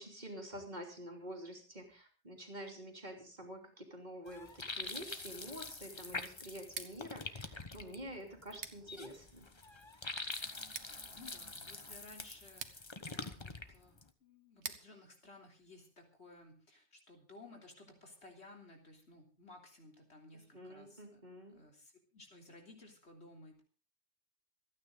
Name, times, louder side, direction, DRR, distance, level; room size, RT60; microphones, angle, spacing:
voice 1, 0.0-9.5 20.3-21.5, equal, 40° right, 2 dB, 3.2 m, -48 dB
sound 1, 4.3-14.1, left 3 dB, 25° left, 1.1 m, -45 dB
Scissors, 6.6-16.4, right 6 dB, 85° right, 1.5 m, -53 dB
voice 2, 11.1-21.2 21.5-23.6, left 2 dB, 75° left, 2 dB, 3.6 m, -57 dB
26.5 x 9.6 x 3.9 m, 0.37 s
omnidirectional pair, 1.1 m